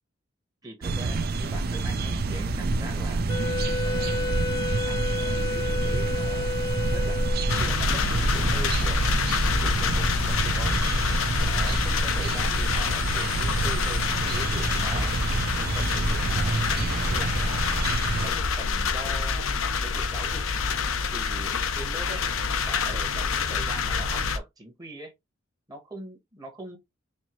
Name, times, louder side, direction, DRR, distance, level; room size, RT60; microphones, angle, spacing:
voice 1, 0.6-3.3 3.8-4.4 4.9-7.3 7.6-9.3 9.6-10.8 11.4-15.1 15.7-17.7 18.2-20.5 21.1-22.3 22.7-25.1 25.7-26.8, right 2 dB, 20° right, 1.0 m, -42 dB
sound 1, 0.8-18.3, right 3 dB, 50° right, 0.5 m, -28 dB
Wind instrument woodwind instrument, 3.3-7.8, left 3 dB, 20° left, 0.3 m, -31 dB
sound 2, 7.5-24.4, left 5 dB, 85° left, 0.6 m, -27 dB
4.4 x 2.7 x 3.0 m
head